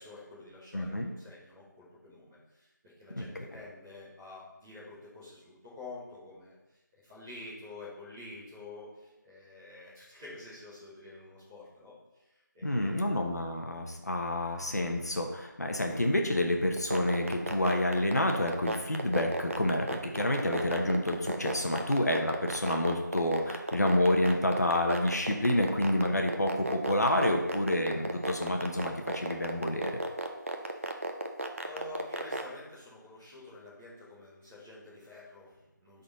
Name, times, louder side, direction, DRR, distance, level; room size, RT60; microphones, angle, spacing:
voice 1, 0.0-6.6 6.9-13.1 30.5-30.9 31.6-36.0, left 2 dB, 5° right, -11 dB, 1.1 m, -48 dB
voice 2, 0.7-1.1 3.2-3.4 12.6-30.0, left 1 dB, 55° left, 2 dB, 1.1 m, -29 dB
sound 1, 16.8-32.4, right 2 dB, 45° right, 0.7 m, -33 dB
11.0 x 4.2 x 4.0 m, 1.0 s
figure-of-eight pair, 175°, 10 cm